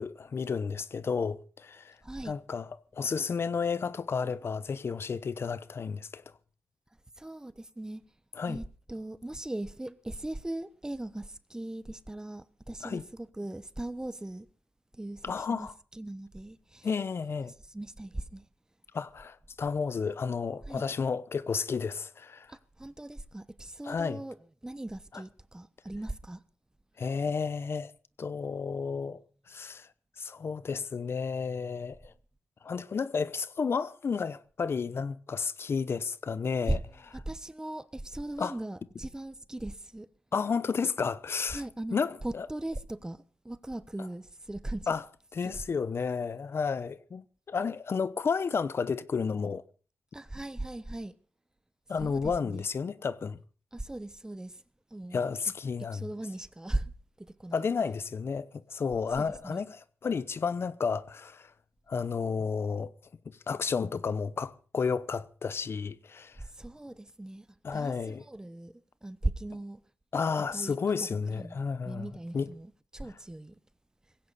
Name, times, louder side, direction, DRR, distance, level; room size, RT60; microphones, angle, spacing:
voice 1, 0.0-2.0 2.2-6.2 8.4-8.6 12.8-13.0 15.2-15.7 16.8-17.5 18.9-22.5 23.8-24.2 27.0-27.9 28.2-29.2 29.5-29.9 30.2-32.1 32.6-36.8 38.4-38.6 40.3-41.6 41.9-42.5 44.9-45.0 45.3-49.6 51.9-53.4 55.1-56.1 57.5-61.5 61.9-62.9 63.3-66.4 67.6-68.2 70.1-72.1 72.3-72.5, left 5 dB, 55° left, 0.8 m, -32 dB
voice 2, 2.0-2.3 7.2-8.0 8.5-14.5 14.9-16.9 17.6-18.5 20.7-20.8 22.5-24.4 24.6-26.4 36.7-36.8 37.1-40.1 41.5-44.9 45.4-45.6 50.1-51.1 52.0-52.7 53.7-54.6 54.9-55.2 55.8-56.9 57.2-57.7 59.2-59.6 66.4-67.5 67.7-68.7 69.0-69.8 70.5-71.1 71.3-73.6, right 1 dB, 15° right, 1.0 m, -38 dB
19.0 x 16.5 x 4.2 m
cardioid pair, 80°, 5 cm